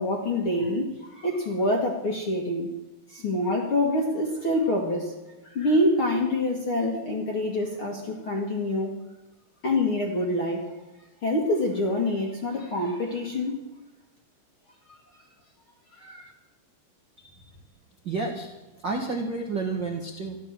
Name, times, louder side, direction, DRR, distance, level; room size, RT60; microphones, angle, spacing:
voice 1, 0.0-2.7 3.1-9.0 9.6-10.7 11.2-13.6 14.9-15.0 15.9-16.3, left 1 dB, 50° left, 1 dB, 1.7 m, -26 dB
voice 2, 18.0-18.5 18.8-20.4, right 3 dB, 60° right, 1 dB, 1.2 m, -30 dB
14.5 x 12.0 x 7.5 m, 1.0 s
omnidirectional pair, 4.7 m